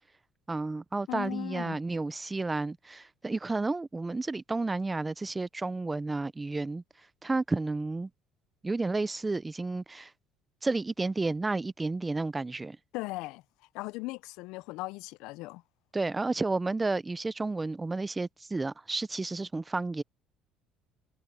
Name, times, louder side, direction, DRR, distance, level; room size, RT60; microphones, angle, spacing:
voice 1, 0.5-6.8 7.2-8.1 8.6-10.1 10.6-12.8 15.9-20.0, right 3 dB, 10° right, 0.4 m, -31 dB
voice 2, 1.1-1.8 12.9-13.4 13.7-15.6, left 21 dB, 80° left, 0.3 m, -38 dB
cardioid pair, 155°, 0 cm